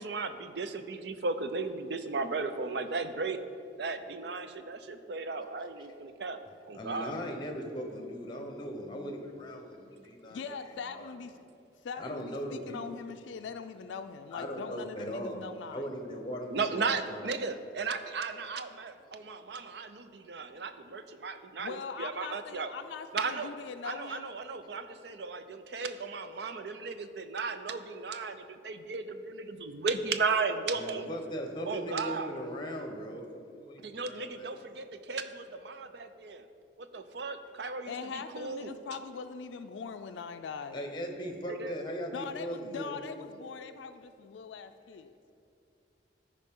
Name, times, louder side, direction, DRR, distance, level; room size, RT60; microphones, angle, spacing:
voice 1, 0.0-3.4 3.8-6.4 6.7-7.1 16.5-22.7 23.1-23.5 23.8-31.1 31.7-32.3 33.8-36.5 36.8-38.8 41.5-41.7, right 4 dB, 65° right, 9 dB, 0.5 m, -35 dB
voice 2, 6.7-10.4 10.9-11.1 12.0-12.8 14.3-17.3 30.7-34.5 40.7-43.0, equal, 25° left, 3 dB, 0.9 m, -39 dB
voice 3, 10.3-11.4 11.8-15.9 21.6-24.3 37.9-40.8 42.1-45.1, left 5 dB, 85° left, 8 dB, 0.4 m, -41 dB
14.0 x 5.1 x 3.7 m, 2.5 s
head